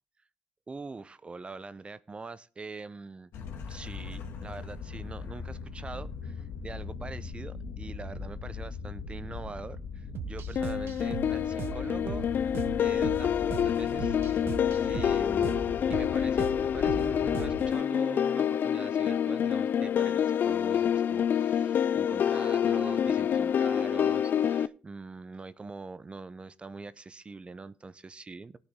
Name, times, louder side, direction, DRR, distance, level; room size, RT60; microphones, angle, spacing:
voice 1, 0.7-3.3 3.7-12.3 12.8-14.5 14.8-15.6 15.9-28.6, right 3 dB, 30° right, 16 dB, 0.7 m, -43 dB
sound 1, 3.3-17.7, left 4 dB, 80° left, 2.2 m, -40 dB
sound 2, 10.1-17.8, right 10 dB, 70° right, 0.9 m, -40 dB
sound 3, 10.6-24.7, left 9 dB, 55° left, 0.5 m, -27 dB
17.5 x 8.3 x 3.7 m, 0.40 s
cardioid pair, 75°, 4 cm